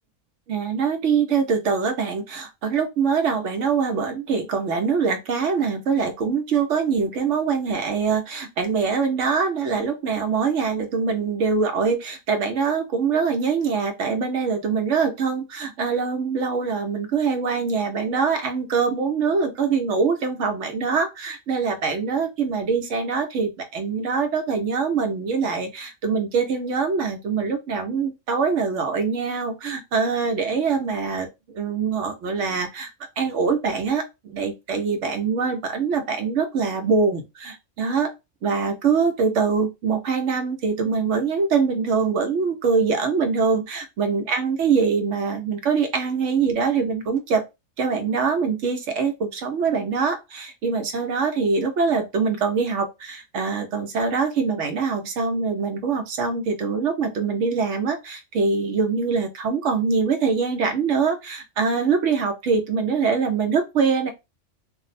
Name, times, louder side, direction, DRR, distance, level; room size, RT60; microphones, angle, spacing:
voice 1, 0.5-31.3 31.5-32.9 33.2-38.1 38.4-47.4 47.8-64.1, right 5 dB, 75° right, 1.0 m, -23 dB
2.6 x 2.0 x 4.0 m
omnidirectional pair, 1.3 m